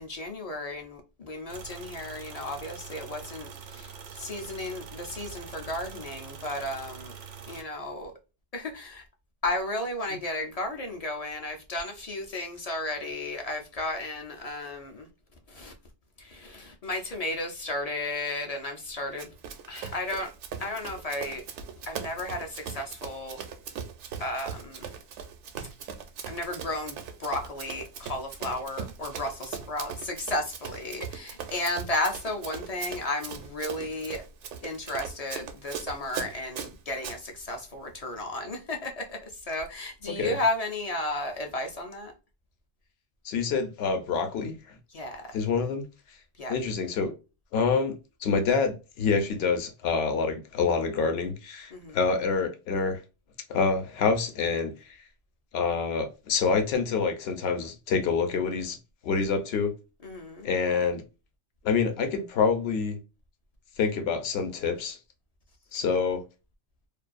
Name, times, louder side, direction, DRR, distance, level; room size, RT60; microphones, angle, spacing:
voice 1, 0.0-7.1 7.5-8.1 8.5-9.0 9.4-15.1 15.5-15.7 16.2-19.3 19.7-20.3 20.6-21.4 21.9-23.4 24.2-24.9 26.3-34.2 34.6-42.1 44.9-45.3 46.4-46.5 51.7-52.0 60.0-60.5, left 2 dB, 50° left, 0.5 m, -33 dB
sound 1, 1.5-7.6, right 6 dB, 55° right, 0.5 m, -44 dB
Run, 19.2-37.2, right 7 dB, 85° right, 0.9 m, -40 dB
voice 2, 43.2-44.8 45.3-45.8 46.5-47.1 47.5-47.9 48.2-53.0 53.5-55.0 55.5-58.8 59.0-59.7 60.4-61.0 61.6-63.0 63.8-65.0 65.7-66.2, left 5 dB, 70° left, 0.8 m, -27 dB
2.5 x 2.3 x 2.4 m
omnidirectional pair, 1.2 m